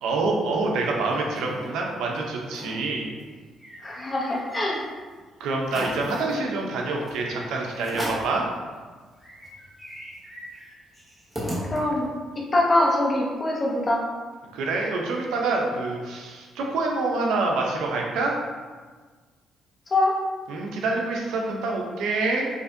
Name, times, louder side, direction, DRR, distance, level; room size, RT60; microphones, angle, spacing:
voice 1, 0.0-3.1 5.4-8.4 14.5-18.3 20.5-22.5, right 3 dB, 85° right, 0 dB, 0.6 m, -26 dB
sound 1, 1.1-1.7 2.1-2.2 2.5-2.8 3.2-4.8 5.2-5.3 5.6-6.4 7.1-7.2 7.8-8.4 8.9-9.0 9.2-12.2, equal, 10° right, 1.1 m, -36 dB
voice 2, 3.8-4.8 11.6-12.1 12.3-14.0 19.9-20.2, left 1 dB, 30° left, -2 dB, 0.8 m, -23 dB
5.1 x 2.5 x 2.6 m, 1.4 s
cardioid pair, 90°, 0 cm